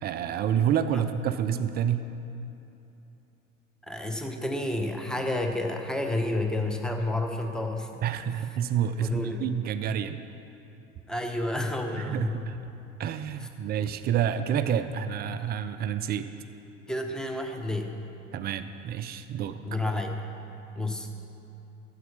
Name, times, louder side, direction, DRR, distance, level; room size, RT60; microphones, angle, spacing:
voice 1, 0.0-2.1 8.0-10.2 12.0-12.6 13.0-16.3 18.3-19.6, right 8 dB, 25° right, 10 dB, 0.4 m, -28 dB
voice 2, 3.9-8.0 9.0-9.5 11.1-12.4 16.9-18.0 19.6-20.2 20.7-21.1, left 1 dB, ahead, 4 dB, 0.9 m, -30 dB
12.5 x 8.1 x 5.7 m, 2.9 s
figure-of-eight pair, 75°, 40 cm